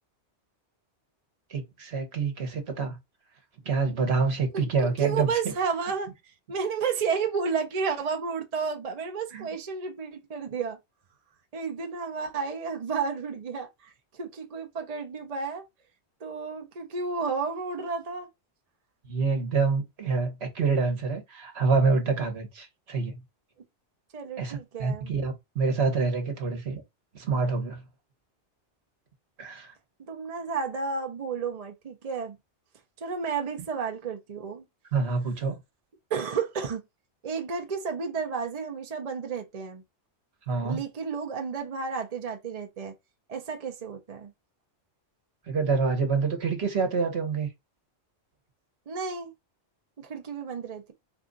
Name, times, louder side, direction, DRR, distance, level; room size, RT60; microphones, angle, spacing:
voice 1, 1.5-3.0 3.6-5.5 9.3-9.5 19.0-23.2 24.4-26.8 27.1-27.8 29.4-29.7 34.9-35.6 40.5-40.8 45.5-47.5, right 4 dB, 65° right, 1.3 m, -27 dB
voice 2, 4.5-6.1 6.5-10.8 11.5-15.6 16.2-18.3 24.1-25.1 30.0-32.4 33.0-34.6 36.1-36.8 37.2-39.8 40.6-42.9 43.3-44.3 48.9-49.3 50.0-50.9, right 5 dB, 40° right, 0.7 m, -32 dB
4.5 x 2.4 x 3.8 m
omnidirectional pair, 1.2 m